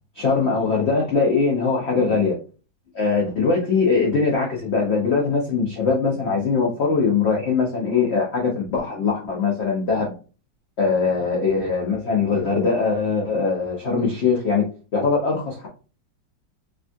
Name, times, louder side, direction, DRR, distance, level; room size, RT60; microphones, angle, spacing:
voice 1, 0.2-2.4 2.9-10.1 10.8-14.6 14.9-15.7, left 4 dB, 85° left, -1 dB, 0.5 m, -21 dB
3.5 x 2.3 x 2.5 m, 0.35 s
omnidirectional pair, 2.0 m